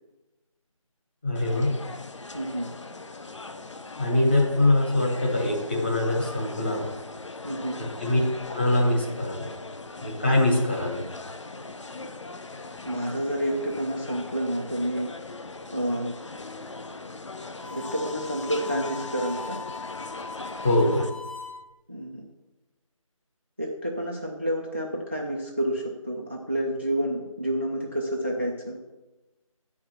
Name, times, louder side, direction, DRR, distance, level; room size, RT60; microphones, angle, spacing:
voice 1, 1.2-1.8 4.0-6.9 8.0-8.2 8.5-9.5 10.0-11.0 20.6-21.0, left 1 dB, 20° left, -2 dB, 0.9 m, -23 dB
sound 1, 1.4-21.1, left 3 dB, 55° left, 0.7 m, -40 dB
voice 2, 2.3-2.7 7.4-7.8 12.8-15.1 15.7-16.1 17.7-19.6 21.9-22.2 23.6-28.8, equal, 20° right, 1 dB, 0.4 m, -29 dB
Harmonica, 17.5-21.6, left 3 dB, 80° left, 1.6 m, -39 dB
8.5 x 4.9 x 5.7 m, 1.1 s
figure-of-eight pair, 165°, 18 cm